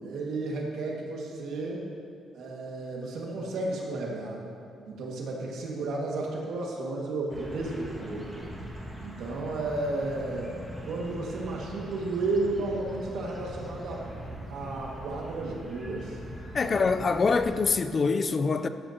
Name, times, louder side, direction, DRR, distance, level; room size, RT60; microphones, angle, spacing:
voice 1, 0.0-1.8 2.3-4.4 4.9-8.4 9.0-10.5 10.8-14.1 14.5-16.2 16.6-16.8, right 2 dB, 75° right, -2 dB, 2.0 m, -33 dB
sound 1, 7.3-17.7, equal, 10° right, 2.0 m, -42 dB
voice 2, 16.5-18.7, left 4 dB, 40° left, 11 dB, 0.5 m, -25 dB
13.5 x 10.5 x 3.0 m, 2.4 s
cardioid pair, 90°, 0 cm